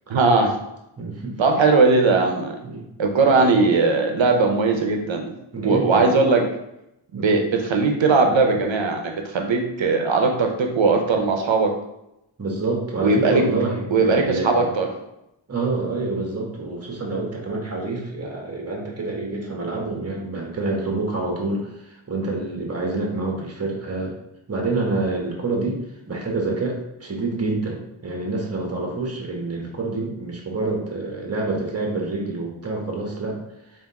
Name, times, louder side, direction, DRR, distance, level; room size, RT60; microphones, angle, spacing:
voice 1, 0.1-0.5 1.4-2.5 3.0-5.3 5.6-6.4 7.1-11.7 13.0-13.4 13.9-14.9, right 3 dB, 70° right, 3 dB, 0.8 m, -19 dB
voice 2, 1.0-1.4 2.6-2.8 3.3-3.4 5.5-6.1 7.1-7.3 12.4-14.7 15.5-24.1 24.5-25.8 26.1-33.4, right 3 dB, 30° right, 0 dB, 1.2 m, -27 dB
3.5 x 2.7 x 4.1 m, 0.86 s
cardioid pair, 55°, 48 cm